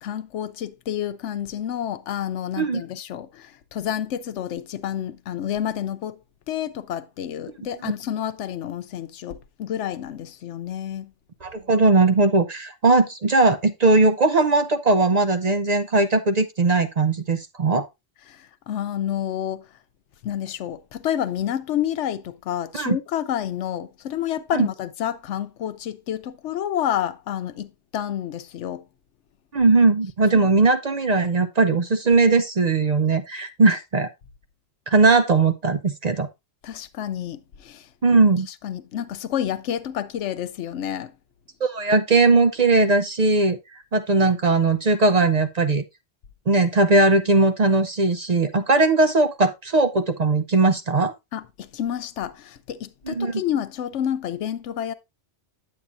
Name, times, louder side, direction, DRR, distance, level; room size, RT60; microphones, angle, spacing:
voice 1, 0.0-6.2 6.5-11.1 18.3-19.7 20.2-28.8 30.3-30.5 36.6-37.9 38.6-41.1 51.3-54.9, left 10 dB, 90° left, 1.0 m, -29 dB
voice 2, 11.4-17.8 22.7-23.0 24.5-24.7 29.5-34.1 34.9-36.3 38.0-38.5 41.6-45.8 46.5-51.1 53.1-53.4, right 3 dB, 45° right, 0.6 m, -19 dB
8.6 x 8.4 x 2.5 m
omnidirectional pair, 1.2 m